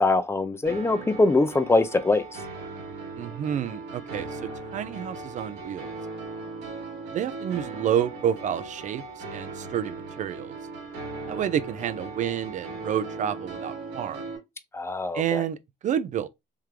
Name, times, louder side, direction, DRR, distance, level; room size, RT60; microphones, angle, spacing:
voice 1, 0.0-2.2 14.7-15.4, left 2 dB, 15° left, 0.5 m, -23 dB
sound 1, 0.6-14.4, right 3 dB, 85° right, 2.0 m, -38 dB
voice 2, 3.2-6.0 7.1-10.6 11.3-14.2 15.1-15.6 15.8-16.3, right 9 dB, 45° right, 0.4 m, -29 dB
3.6 x 3.1 x 3.3 m
cardioid pair, 110°, 17 cm